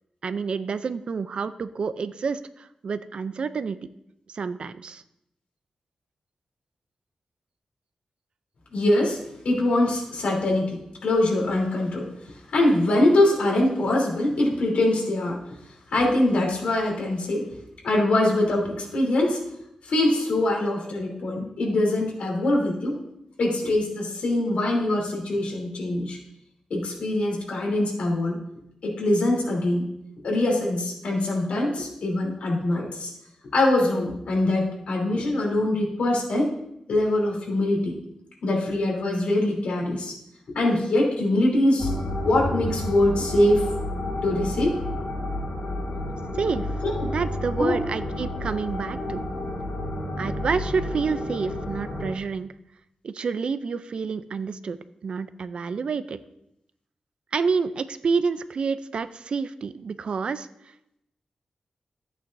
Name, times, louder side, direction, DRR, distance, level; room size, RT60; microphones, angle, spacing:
voice 1, 0.2-3.8 4.3-5.0 46.4-46.7 47.0-49.2 50.2-52.5 53.0-54.8 55.0-56.2 57.3-60.5, right 5 dB, 55° right, 13 dB, 0.4 m, -28 dB
voice 2, 8.7-9.2 9.4-12.1 12.5-15.4 15.9-17.5 17.8-19.4 19.8-23.0 23.4-26.2 26.7-28.4 28.8-29.8 30.2-33.1 33.5-36.5 36.9-38.0 38.4-40.1 40.5-41.9 42.2-43.6 44.2-44.7 46.8-47.1 47.6-47.7, left 1 dB, 85° left, -2 dB, 3.3 m, -23 dB
sound 1, 41.8-52.1, left 1 dB, 45° left, 2.8 m, -30 dB
14.0 x 8.6 x 2.6 m, 0.80 s
wide cardioid pair, 175°, 2 cm